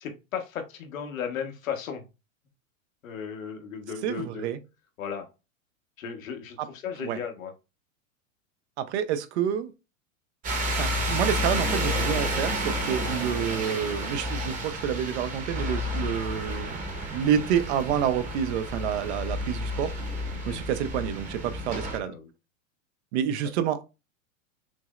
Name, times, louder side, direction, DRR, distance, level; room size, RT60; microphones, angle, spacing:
voice 1, 0.0-2.0 3.0-4.5 5.0-5.3 6.0-7.5 13.7-13.8 20.3-20.6 22.0-22.3, left 7 dB, 85° left, 1.2 m, -35 dB
voice 2, 4.0-4.6 6.6-6.7 7.0-7.2 8.8-9.7 10.8-16.7 17.1-19.9 20.5-22.1 23.1-23.8, right 9 dB, 55° right, 0.6 m, -28 dB
sound 1, 10.4-22.0, equal, 20° right, 0.9 m, -30 dB
6.0 x 2.0 x 2.4 m
hypercardioid pair, 135°, 39 cm